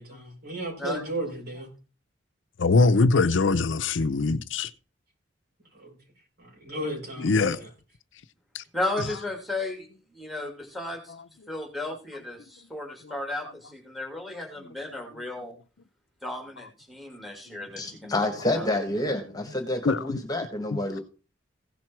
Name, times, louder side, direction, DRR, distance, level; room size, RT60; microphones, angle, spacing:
voice 1, 0.0-1.7 5.7-6.0 6.4-7.7, right 1 dB, 55° right, 7.2 m, -35 dB
voice 2, 2.6-4.7 7.2-7.6 8.5-8.6 19.8-20.2 20.7-20.8, left 3 dB, 75° left, 0.6 m, -22 dB
voice 3, 8.7-11.1 11.5-15.5 16.2-18.1 18.5-18.7, left 2 dB, ahead, 2.8 m, -34 dB
voice 4, 17.7-21.0, left 1 dB, 20° left, 1.7 m, -28 dB
16.5 x 6.0 x 4.5 m
head